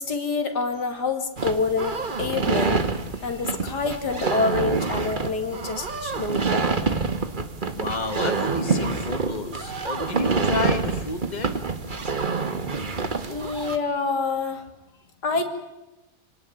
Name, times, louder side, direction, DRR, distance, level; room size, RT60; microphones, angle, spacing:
voice 1, 0.0-2.8 3.2-6.9 13.3-14.6 15.2-15.4, left 4 dB, 85° left, 6 dB, 2.9 m, -27 dB
sound 1, 1.4-13.8, right 4 dB, 30° right, 1.5 m, -27 dB
voice 2, 7.7-11.9, left 3 dB, 25° left, 7 dB, 2.3 m, -31 dB
27.0 x 19.0 x 9.8 m, 1.0 s
omnidirectional pair, 1.7 m